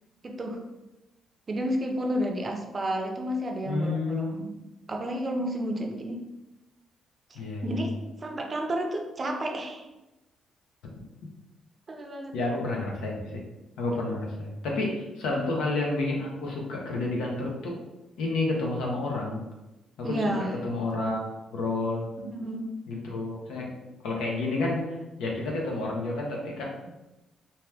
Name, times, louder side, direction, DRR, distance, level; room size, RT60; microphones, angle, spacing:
voice 1, 0.2-0.6 1.5-4.5 4.9-6.2 7.3-7.9 8.2-9.9 11.9-12.4 15.3-15.5 20.0-20.5 22.2-22.7, right 1 dB, 35° right, 2 dB, 0.5 m, -31 dB
voice 2, 3.6-4.4 7.3-7.9 12.3-13.4 13.8-17.8 18.2-19.4 20.0-21.2 21.5-22.1 22.9-23.7 24.0-26.9, left 2 dB, 90° left, -1 dB, 0.7 m, -30 dB
2.8 x 2.3 x 3.3 m, 1.0 s
cardioid pair, 90°, 0 cm